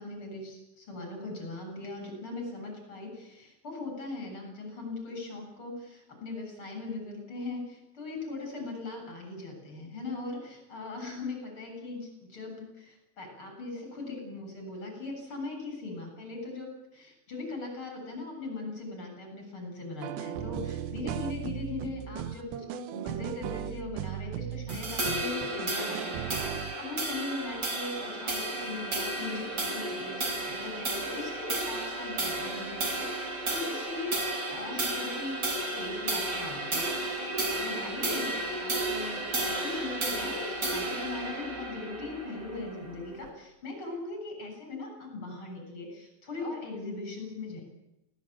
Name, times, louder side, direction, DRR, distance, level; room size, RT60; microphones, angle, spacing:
voice 1, 0.0-47.6, left 2 dB, 30° left, 3 dB, 8.3 m, -39 dB
sound 1, 20.0-26.8, right 11 dB, 90° right, 3.2 m, -37 dB
sound 2, 24.7-43.3, right 2 dB, 25° right, 3.2 m, -33 dB
21.0 x 18.0 x 9.0 m, 0.90 s
omnidirectional pair, 4.8 m